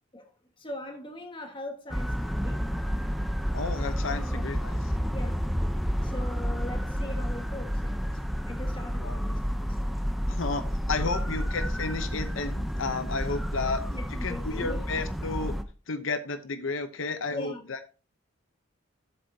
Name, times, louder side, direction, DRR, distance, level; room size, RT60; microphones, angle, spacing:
voice 1, 0.6-2.7 4.2-4.8 5.1-5.6 6.0-9.9 11.2-11.3 13.9-14.8 17.3-17.7, left 1 dB, 25° left, 1.6 m, -41 dB
sound 1, 1.9-15.6, equal, ahead, 0.7 m, -30 dB
voice 2, 3.5-4.8 6.0-6.1 9.0-9.2 10.3-13.8 14.2-15.6 15.9-17.8, left 3 dB, 75° left, 0.8 m, -32 dB
12.0 x 7.8 x 2.8 m
head